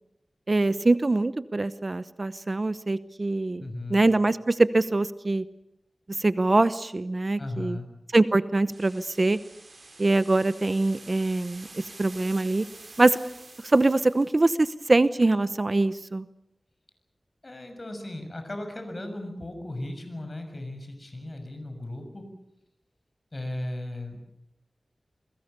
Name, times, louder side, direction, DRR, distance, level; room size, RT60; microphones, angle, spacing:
voice 1, 0.5-5.4 6.1-7.8 8.1-9.4 10.0-12.6 13.0-13.2 13.6-16.3, right 2 dB, 40° right, 14 dB, 0.8 m, -23 dB
voice 2, 3.6-4.1 7.4-7.9 17.4-22.3 23.3-24.2, left 1 dB, 40° left, 6 dB, 6.6 m, -36 dB
sound 1, 8.7-14.4, right 2 dB, 60° right, 6.8 m, -48 dB
28.5 x 21.5 x 6.9 m, 0.82 s
wide cardioid pair, 80°, 0 cm